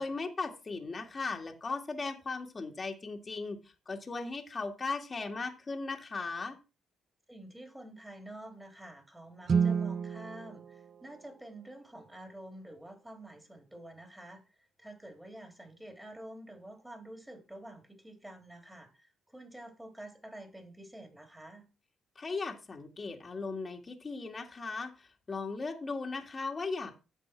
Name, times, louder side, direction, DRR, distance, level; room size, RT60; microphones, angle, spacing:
voice 1, 0.0-3.6 3.9-6.6 22.2-26.9, left 4 dB, 30° left, 3 dB, 2.0 m, -37 dB
voice 2, 7.3-14.4 14.8-21.7, right 1 dB, 10° right, 4 dB, 3.5 m, -48 dB
Guitar, 9.5-12.0, right 6 dB, 45° right, 0.5 m, -32 dB
10.0 x 7.4 x 4.6 m, 0.31 s
cardioid pair, 90°, 0 cm